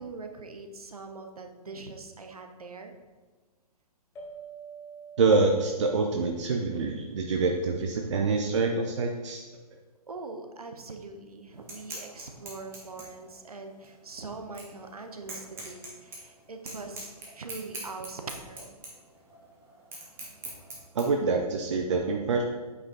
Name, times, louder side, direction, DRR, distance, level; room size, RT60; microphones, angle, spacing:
voice 1, 0.0-3.0 10.1-18.7, right 3 dB, 65° right, 5 dB, 1.1 m, -42 dB
sound 1, 4.2-7.1, right 5 dB, 10° left, 1.1 m, -47 dB
voice 2, 5.2-9.4 20.9-22.4, right 4 dB, 50° right, 2 dB, 0.7 m, -26 dB
sound 2, 11.5-21.0, right 2 dB, 10° right, 1.4 m, -44 dB
8.5 x 5.2 x 3.8 m, 1.3 s
figure-of-eight pair, 125°, 20 cm